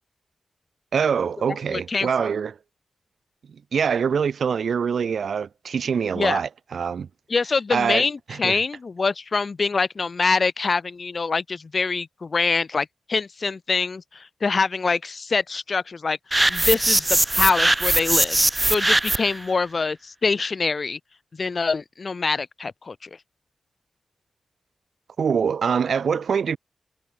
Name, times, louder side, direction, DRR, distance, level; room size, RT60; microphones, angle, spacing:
voice 1, 0.9-2.6 3.7-7.1 7.7-8.0 8.3-8.6 25.2-26.6, right 6 dB, 75° right, 6.3 m, -24 dB
voice 2, 1.7-2.1 6.1-6.4 7.3-16.2 16.5-18.4 18.7-21.0 21.4-23.1, left 4 dB, 55° left, 5.0 m, -24 dB
sound 1, 16.3-19.4, right 1 dB, 25° right, 4.0 m, -20 dB
supercardioid pair, 40°, 0 cm